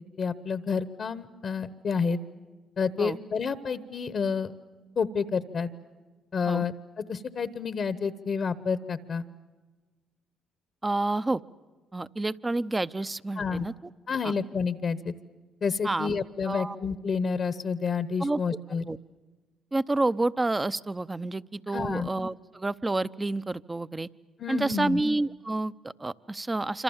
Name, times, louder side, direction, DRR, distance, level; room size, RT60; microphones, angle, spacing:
voice 1, 0.2-2.2 2.8-4.5 5.0-5.7 6.3-9.3 13.4-13.7 14.1-15.1 15.6-18.8 21.7-22.1 24.4-25.0, left 5 dB, 55° left, 14 dB, 1.0 m, -29 dB
voice 2, 10.8-11.4 11.9-13.9 14.2-14.3 15.8-16.2 16.4-16.8 18.2-18.4 18.9-19.0 19.7-24.1 24.5-26.8, right 2 dB, 20° right, 15 dB, 0.7 m, -29 dB
26.5 x 26.0 x 7.3 m, 1.3 s
supercardioid pair, 60°, 0 cm